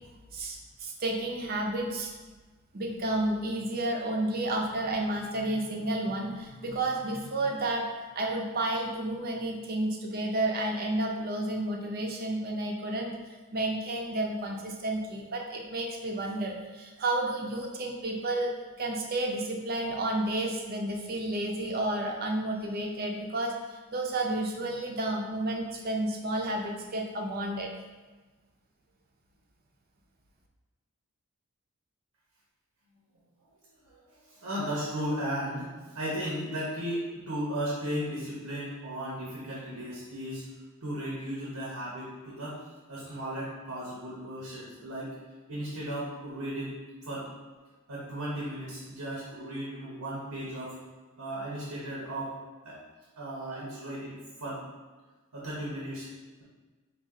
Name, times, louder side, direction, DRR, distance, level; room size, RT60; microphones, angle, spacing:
voice 1, 0.3-2.1 2.7-7.9 8.1-27.7, right 1 dB, 40° right, 1 dB, 0.6 m, -31 dB
voice 2, 34.3-40.5 40.8-42.6 42.9-45.1 45.5-47.3 47.9-50.8 51.2-52.4 52.6-52.8 53.2-54.6 55.3-56.1, equal, 85° right, -5 dB, 1.0 m, -35 dB
5.1 x 2.4 x 3.6 m, 1.3 s
head